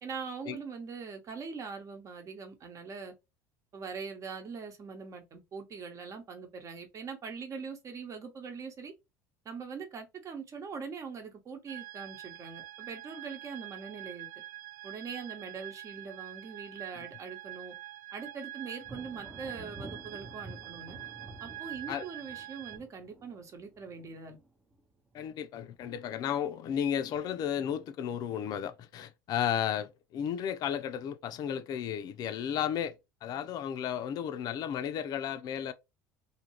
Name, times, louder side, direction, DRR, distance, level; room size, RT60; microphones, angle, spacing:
voice 1, 0.0-3.1 3.7-8.9 9.4-14.3 14.8-17.7 18.1-21.0 21.4-24.4, right 5 dB, 40° right, 1.0 m, -42 dB
sound 1, 11.7-22.8, right 15 dB, 70° right, 0.4 m, -45 dB
Thunder, 18.8-25.3 25.6-26.2 26.7-27.5, right 2 dB, 15° right, 0.6 m, -50 dB
voice 2, 25.1-32.9 33.2-35.7, left 9 dB, 50° left, 0.5 m, -33 dB
2.7 x 2.5 x 2.9 m
hypercardioid pair, 85°, 8 cm